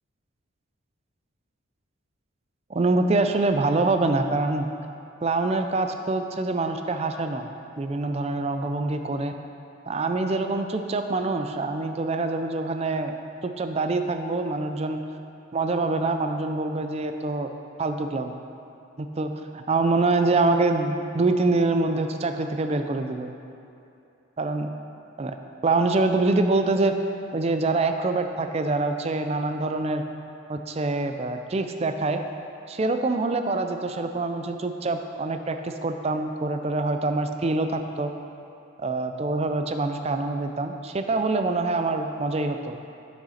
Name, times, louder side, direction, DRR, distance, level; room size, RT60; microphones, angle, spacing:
voice 1, 2.7-4.7 5.2-7.5 7.8-9.3 9.9-13.1 13.4-15.0 15.5-17.5 17.8-18.3 19.0-23.3 24.4-24.7 25.2-25.3 25.6-26.9 27.3-30.0 30.5-32.2 32.7-38.1 38.8-42.8, right 3 dB, 30° right, 6 dB, 0.3 m, -25 dB
9.4 x 6.3 x 4.2 m, 2.6 s
head